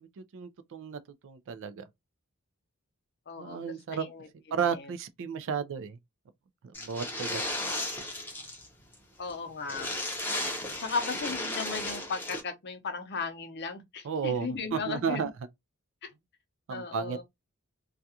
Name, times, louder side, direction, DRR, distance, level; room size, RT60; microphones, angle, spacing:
voice 1, 0.0-1.8 3.4-4.1 4.5-6.0 6.8-7.7 9.7-9.9 14.0-15.3 16.7-17.2, right 6 dB, 60° right, 0.4 m, -33 dB
voice 2, 3.3-3.6 3.9-4.3 4.5-4.8 9.2-9.9 10.8-15.3 16.7-17.2, left 4 dB, 50° left, 0.6 m, -36 dB
sound 1, 6.7-8.7 8.9-9.0 9.3-9.4 9.7-12.4, left 1 dB, 10° left, 0.7 m, -34 dB
2.4 x 2.3 x 2.7 m
head